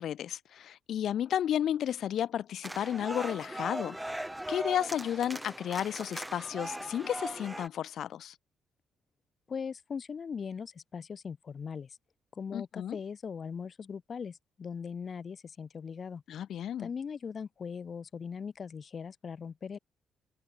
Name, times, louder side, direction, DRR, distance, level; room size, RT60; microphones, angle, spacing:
voice 1, 0.0-8.3 12.5-13.0 16.3-16.9, left 10 dB, 70° left, 1.4 m, -33 dB
sound 1, 2.6-7.7, right 1 dB, 5° right, 2.0 m, -39 dB
voice 2, 9.5-12.0 12.3-16.2 16.8-19.8, left 6 dB, 45° left, 5.2 m, -40 dB
cardioid pair, 75°, 0 cm